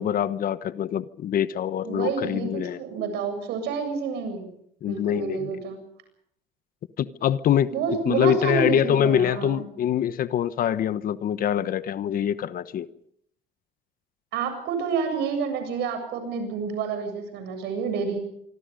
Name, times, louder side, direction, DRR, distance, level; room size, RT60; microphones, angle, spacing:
voice 1, 0.0-2.8 4.8-5.6 7.0-12.9, left 10 dB, 60° left, 1.1 m, -24 dB
voice 2, 1.8-4.5 4.9-5.8 7.7-9.6 14.3-18.2, right 5 dB, 85° right, 7.7 m, -29 dB
26.0 x 23.5 x 5.3 m
cardioid pair, 110°, 17 cm